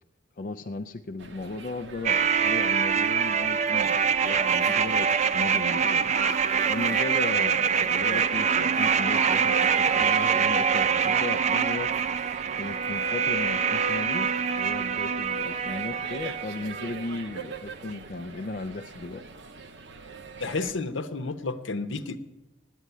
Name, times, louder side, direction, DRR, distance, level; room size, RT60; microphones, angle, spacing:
voice 1, 0.4-6.2 6.7-11.9 12.6-19.2, left 2 dB, 45° left, 7 dB, 0.4 m, -36 dB
sound 1, 1.2-20.7, right 4 dB, 65° right, 0.9 m, -43 dB
sound 2, 2.0-17.1 17.3-17.4, right 7 dB, 35° right, 0.4 m, -25 dB
voice 2, 20.4-22.2, left 3 dB, 80° left, 9 dB, 0.9 m, -31 dB
9.4 x 9.3 x 9.9 m, 0.99 s
head